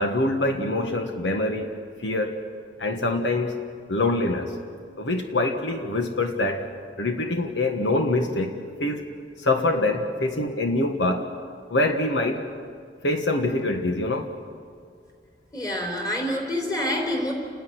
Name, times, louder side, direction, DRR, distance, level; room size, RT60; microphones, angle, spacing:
voice 1, 0.0-1.7 2.0-2.4 2.8-3.6 3.9-4.6 5.0-6.6 7.0-9.1 9.4-11.3 11.7-12.4 13.0-14.3, left 2 dB, 85° left, 5 dB, 1.5 m, -25 dB
voice 2, 15.5-17.3, left 1 dB, 20° left, 1 dB, 3.7 m, -27 dB
29.5 x 10.5 x 9.4 m, 2.1 s
head